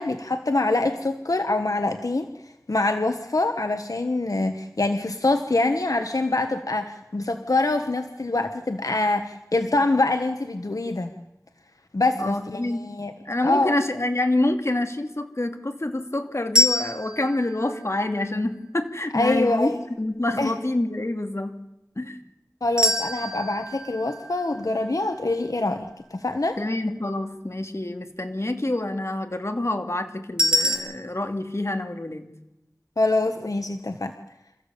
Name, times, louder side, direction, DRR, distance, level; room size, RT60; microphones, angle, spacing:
voice 1, 0.0-2.3 2.7-11.1 11.9-13.1 13.4-13.8 19.1-19.8 20.4-20.5 22.6-26.6 33.0-34.1, left 2 dB, 80° left, 7 dB, 1.3 m, -25 dB
voice 2, 12.2-12.8 13.2-19.7 20.0-21.5 22.0-22.2 26.6-32.3, left 1 dB, 55° left, 6 dB, 2.5 m, -27 dB
sound 1, 16.6-18.7 22.8-25.9 30.4-30.8, left 1 dB, 15° right, 5.5 m, -26 dB
27.0 x 15.0 x 8.5 m, 0.93 s
wide cardioid pair, 45°, 6 cm